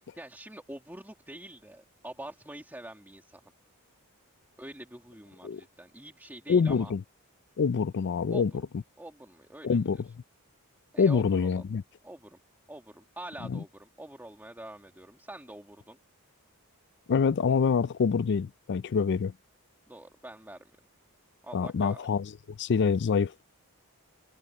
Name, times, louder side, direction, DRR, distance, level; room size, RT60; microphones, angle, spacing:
voice 1, 0.2-3.4 4.6-6.9 8.3-8.4 9.0-9.8 10.9-11.6 12.0-12.4 12.7-16.0 19.9-20.7 21.4-22.0, right 1 dB, 10° right, 2.0 m, -45 dB
voice 2, 6.5-7.0 7.6-8.8 9.6-10.1 11.0-11.8 13.5-13.6 17.1-19.3 21.5-23.4, left 5 dB, 50° left, 0.4 m, -26 dB
head